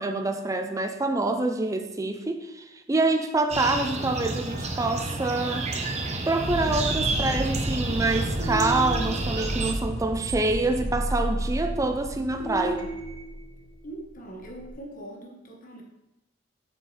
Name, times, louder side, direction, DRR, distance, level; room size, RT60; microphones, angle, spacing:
voice 1, 0.0-5.7 6.3-12.9, right 2 dB, 15° right, 6 dB, 0.4 m, -26 dB
sound 1, 3.5-9.7, right 2 dB, 35° right, 0.9 m, -30 dB
sound 2, 6.4-12.9, equal, 55° right, 1.6 m, -33 dB
sound 3, 7.4-14.7, right 2 dB, 70° right, 0.9 m, -34 dB
voice 2, 13.8-15.8, right 1 dB, 45° left, 1 dB, 1.2 m, -41 dB
8.1 x 6.5 x 3.3 m, 0.94 s
head